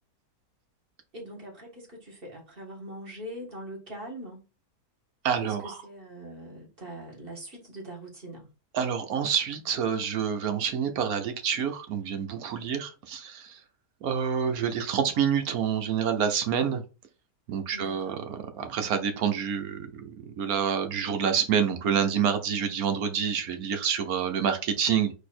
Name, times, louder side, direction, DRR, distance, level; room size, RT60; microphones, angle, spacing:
voice 1, 1.1-4.5 5.4-8.5 17.7-18.2, right 1 dB, 35° right, 1.6 m, -42 dB
voice 2, 5.2-5.7 8.7-13.6 14.0-16.8 17.5-25.1, right 7 dB, 65° right, 1.2 m, -27 dB
4.2 x 2.8 x 4.2 m
omnidirectional pair, 1.8 m